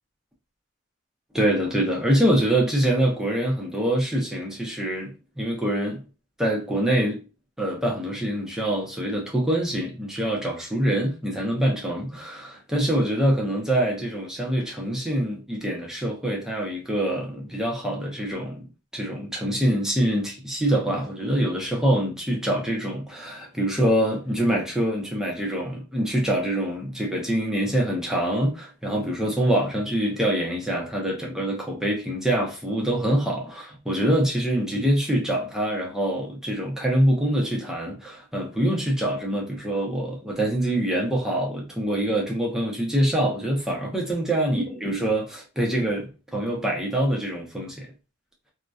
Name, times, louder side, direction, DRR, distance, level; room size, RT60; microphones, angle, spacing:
voice 1, 1.3-6.0 6.4-7.2 7.6-18.7 18.9-47.9, right 1 dB, 5° right, 0.6 m, -25 dB
2.5 x 2.1 x 2.2 m
head